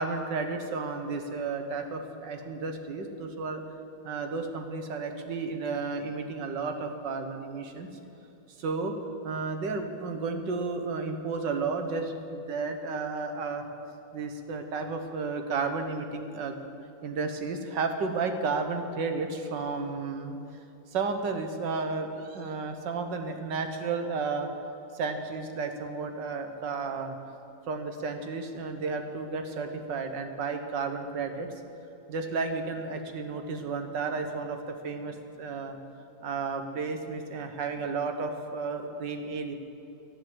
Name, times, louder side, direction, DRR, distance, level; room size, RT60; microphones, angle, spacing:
voice 1, 0.0-3.6 4.0-7.9 8.6-9.0 9.2-13.7 14.1-16.6 17.0-20.4 20.9-24.5 24.9-27.1 27.7-31.5 32.1-35.8 36.2-39.5, right 4 dB, 60° right, 6 dB, 1.6 m, -32 dB
12.0 x 10.5 x 7.8 m, 2.8 s
omnidirectional pair, 2.4 m